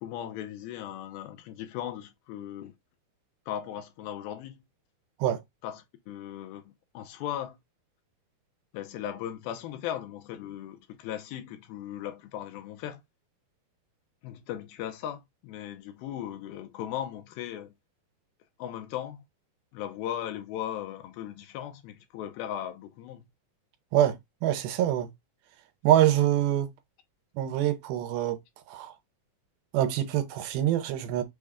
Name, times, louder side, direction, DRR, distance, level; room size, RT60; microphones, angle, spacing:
voice 1, 0.0-2.7 3.5-4.6 5.6-7.6 8.7-13.0 14.2-17.7 18.6-19.2 19.7-23.3, left 11 dB, 80° left, 2.4 m, -37 dB
voice 2, 24.4-25.1 25.8-26.7 27.4-28.4 28.7-28.9 29.7-31.2, right 12 dB, 80° right, 2.4 m, -25 dB
6.3 x 2.2 x 3.5 m
omnidirectional pair, 4.5 m